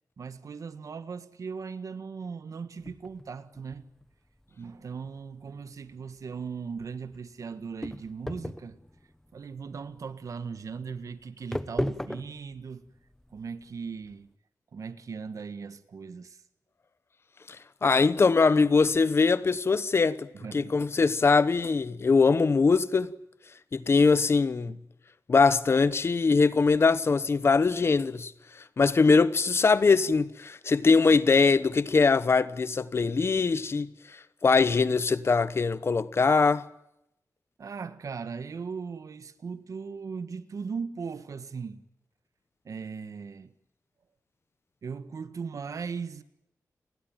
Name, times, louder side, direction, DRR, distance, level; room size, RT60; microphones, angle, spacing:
voice 1, 0.2-3.9 4.5-8.8 9.3-12.9 13.3-14.3 14.7-16.4 20.3-20.7 24.7-24.8 37.6-41.8 42.6-43.5 44.8-46.2, right 5 dB, 65° right, 1.7 m, -38 dB
sound 1, 2.8-14.2, left 1 dB, 5° left, 1.0 m, -39 dB
voice 2, 17.5-23.1 23.7-24.7 25.3-36.7, left 4 dB, 45° left, 1.0 m, -22 dB
30.0 x 20.5 x 9.0 m
wide cardioid pair, 155°, 6 cm